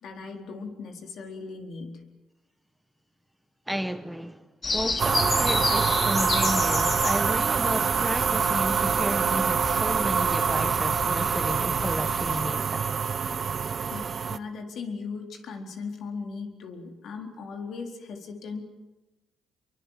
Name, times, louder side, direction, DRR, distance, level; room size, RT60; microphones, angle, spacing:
voice 1, 0.0-2.0 13.9-18.6, left 4 dB, 70° left, 4.1 m, -38 dB
voice 2, 3.7-4.4 4.7-12.8, equal, 5° right, 1.3 m, -32 dB
sound 1, 4.6-12.4, left 3 dB, 35° left, 2.9 m, -32 dB
sound 2, 5.0-14.4, right 6 dB, 45° right, 0.9 m, -25 dB
25.5 x 23.5 x 7.5 m
cardioid pair, 90°, 0 cm